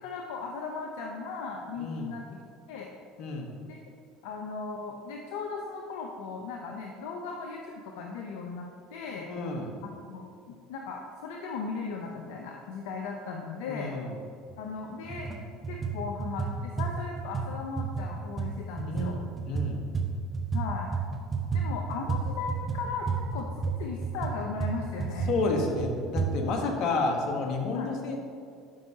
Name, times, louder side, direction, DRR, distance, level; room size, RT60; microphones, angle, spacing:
voice 1, 0.0-2.2 2.7-2.9 3.7-3.8 4.2-9.3 9.8-13.9 14.6-15.3 15.7-19.2 20.5-20.9 21.5-25.3 26.6-26.7 27.7-28.0, left 4 dB, 75° left, 1 dB, 0.6 m, -37 dB
voice 2, 1.8-2.1 3.2-3.5 9.2-9.8 13.7-14.1 18.8-19.2 19.5-19.8 25.3-28.2, left 3 dB, 60° left, 2 dB, 1.2 m, -30 dB
sound 1, 14.5-14.6 15.0-15.4 15.6-20.7 20.9-26.3, right 5 dB, 25° right, 1.2 m, -31 dB
11.5 x 5.4 x 2.8 m, 2.3 s
hypercardioid pair, 80°, 0 cm